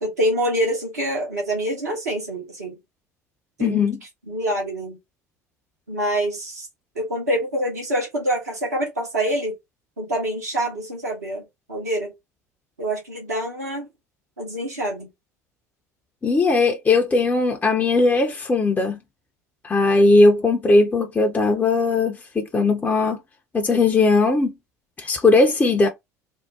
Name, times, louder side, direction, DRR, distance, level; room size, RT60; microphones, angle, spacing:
voice 1, 0.0-2.7 3.6-3.9 4.3-5.0 5.9-6.7 6.9-9.5 10.0-12.1 12.8-13.9 14.4-15.1, right 1 dB, 80° right, 1.6 m, -26 dB
voice 2, 3.6-4.0 16.2-19.0 19.6-23.2 23.5-24.5 25.0-25.9, left 3 dB, 20° left, 0.7 m, -18 dB
3.5 x 2.2 x 2.7 m
figure-of-eight pair, 65°, 9 cm